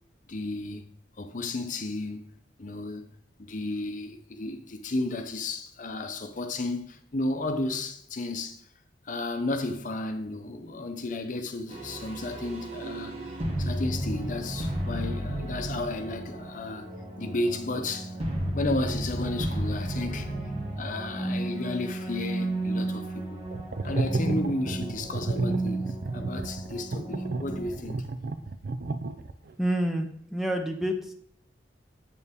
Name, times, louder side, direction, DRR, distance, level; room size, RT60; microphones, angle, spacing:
voice 1, 0.3-0.8 1.2-2.3 2.6-3.0 3.5-8.6 9.1-13.3 13.6-16.9 17.2-18.2 18.5-20.3 20.8-23.4 23.8-25.8 26.1-28.0, left 2 dB, 45° left, 0.7 m, -33 dB
sound 1, 11.7-27.7, right 1 dB, 35° right, 1.3 m, -33 dB
sound 2, 23.5-29.5, right 3 dB, 55° right, 0.5 m, -32 dB
voice 2, 29.6-31.1, right 1 dB, ahead, 0.7 m, -28 dB
8.2 x 6.6 x 3.5 m
head